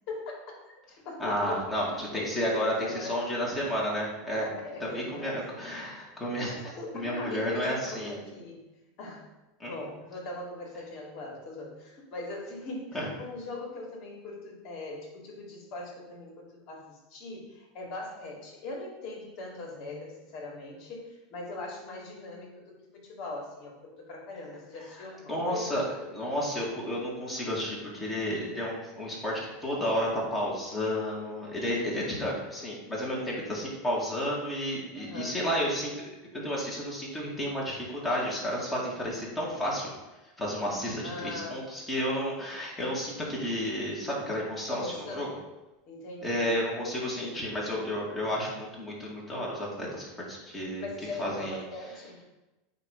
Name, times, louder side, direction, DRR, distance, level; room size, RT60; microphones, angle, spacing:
voice 1, 0.1-3.3 4.6-5.4 6.5-8.6 9.0-9.2 9.6-25.8 34.9-35.4 41.0-41.6 44.7-45.4 45.9-46.6 50.8-52.2, left 2 dB, 55° left, 0 dB, 2.4 m, -40 dB
voice 2, 1.2-4.5 4.8-6.5 6.9-8.2 9.6-9.7 12.9-13.1 25.3-25.9 26.1-36.1 36.3-39.9 40.4-45.3 46.2-50.9 51.2-51.6, equal, 15° left, -5 dB, 2.2 m, -31 dB
8.9 x 3.0 x 5.3 m, 1.0 s
supercardioid pair, 125°, 0 cm